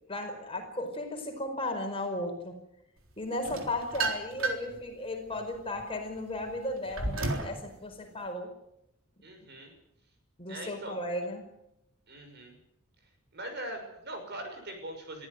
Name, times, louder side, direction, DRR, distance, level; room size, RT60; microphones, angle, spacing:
voice 1, 0.1-2.5 3.2-8.5 10.4-11.4, left 1 dB, 25° left, 4 dB, 4.9 m, -35 dB
sound 1, 3.4-4.8 5.3-7.6, right 3 dB, 75° right, 3.7 m, -33 dB
voice 2, 9.2-9.8 10.5-11.0 12.1-12.6 13.3-15.3, right 1 dB, 50° right, 5 dB, 6.2 m, -41 dB
23.0 x 15.0 x 9.6 m, 0.82 s
head